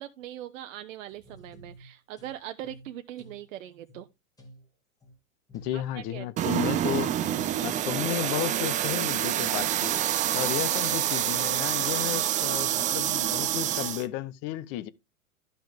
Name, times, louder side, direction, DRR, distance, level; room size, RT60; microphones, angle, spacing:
voice 1, 0.0-4.1 5.7-6.6, right 12 dB, 65° right, 0.8 m, -41 dB
sound 1, 1.1-2.4 2.6-3.5 3.9-4.1 4.4-4.7 5.0-5.2 5.5-6.2 7.1-7.7 7.9-8.3 9.5-9.7 13.1-13.2 13.7-13.9, right 1 dB, 10° left, 2.7 m, -51 dB
voice 2, 5.5-7.2 7.6-9.9 10.3-14.9, left 14 dB, 35° left, 0.7 m, -33 dB
sound 2, 6.4-14.1, right 11 dB, 20° right, 0.5 m, -27 dB
12.0 x 5.6 x 3.4 m
hypercardioid pair, 110°, 43 cm